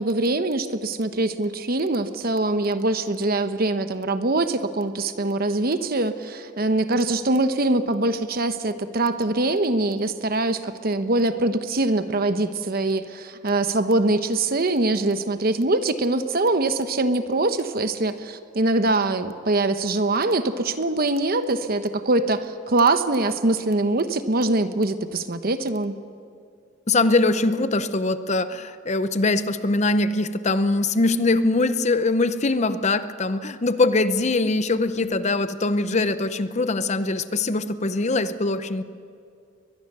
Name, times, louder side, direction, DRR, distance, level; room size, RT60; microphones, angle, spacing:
voice 1, 0.0-25.9, right 2 dB, 50° right, 10 dB, 1.0 m, -23 dB
voice 2, 26.9-38.8, left 2 dB, 35° left, 12 dB, 0.7 m, -22 dB
22.5 x 20.5 x 6.8 m, 2.3 s
head